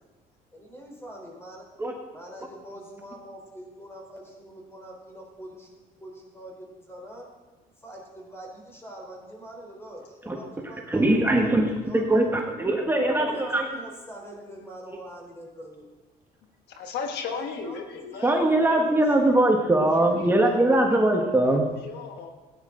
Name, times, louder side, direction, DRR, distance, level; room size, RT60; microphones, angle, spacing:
voice 1, 0.5-1.7 2.1-7.3 7.8-12.3 13.3-15.9 17.3-19.0, right 1 dB, 15° left, -1 dB, 3.9 m, -44 dB
voice 2, 10.9-13.7 18.2-21.7, right 1 dB, 15° right, 1 dB, 1.5 m, -21 dB
voice 3, 16.7-18.4 20.0-22.3, left 5 dB, 80° left, 5 dB, 1.5 m, -36 dB
16.5 x 9.8 x 3.9 m, 1.2 s
cardioid pair, 110°, 17 cm